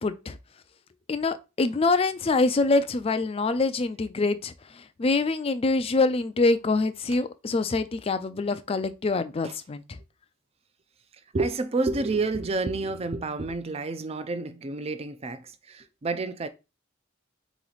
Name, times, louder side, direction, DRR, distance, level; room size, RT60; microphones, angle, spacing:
voice 1, 0.0-0.4 1.1-10.0, left 3 dB, 30° left, 0.4 m, -25 dB
voice 2, 11.3-16.5, right 3 dB, 30° right, 0.5 m, -29 dB
4.1 x 3.0 x 3.9 m
head